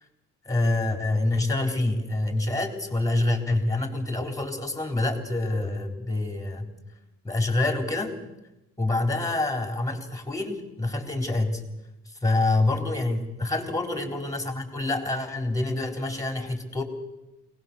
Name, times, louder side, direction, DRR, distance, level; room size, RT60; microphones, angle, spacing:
voice 1, 0.4-6.7 7.2-8.2 8.8-11.7 12.1-16.8, left 2 dB, 10° left, 5 dB, 4.0 m, -26 dB
22.5 x 19.0 x 7.0 m, 0.96 s
cardioid pair, 90°, 30 cm